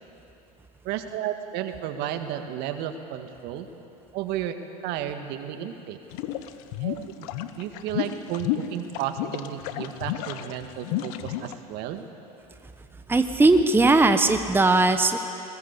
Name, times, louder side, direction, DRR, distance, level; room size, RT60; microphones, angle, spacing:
voice 1, 0.8-3.7 4.1-4.6 4.8-6.0 6.8-7.3 7.6-12.1, right 10 dB, 60° right, 7 dB, 1.9 m, -33 dB
sound 1, 6.1-11.5, left 13 dB, 65° left, 1.2 m, -31 dB
voice 2, 13.1-15.2, right 2 dB, 10° right, 8 dB, 1.1 m, -19 dB
21.0 x 19.5 x 8.4 m, 2.9 s
hypercardioid pair, 85°, 20 cm